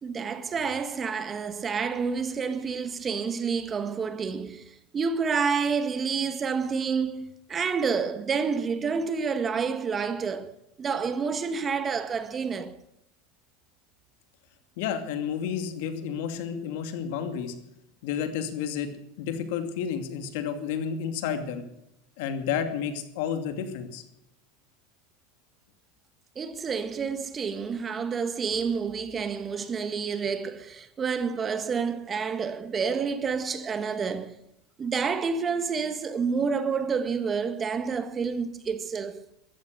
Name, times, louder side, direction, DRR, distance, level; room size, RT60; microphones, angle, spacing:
voice 1, 0.0-12.8 26.3-34.4 34.8-39.2, right 5 dB, 30° right, 1.6 m, -29 dB
voice 2, 14.8-17.5 18.0-18.9 19.2-21.6 22.2-24.0, left 8 dB, 65° left, 2.5 m, -31 dB
14.5 x 14.0 x 6.6 m
hypercardioid pair, 95°, 0 cm